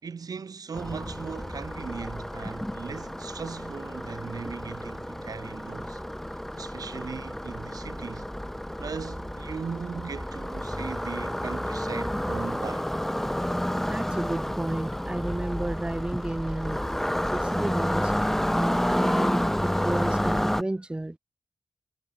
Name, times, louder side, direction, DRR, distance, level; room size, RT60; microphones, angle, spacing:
voice 1, 0.0-6.0 6.5-8.3 8.8-12.9, right 5 dB, 55° right, 3.7 m, -38 dB
sound 1, 0.7-20.6, equal, 5° left, 3.0 m, -30 dB
voice 2, 13.9-16.8 17.3-18.1 18.5-21.2, right 1 dB, 15° right, 1.0 m, -32 dB
wide cardioid pair, 110°, 7 cm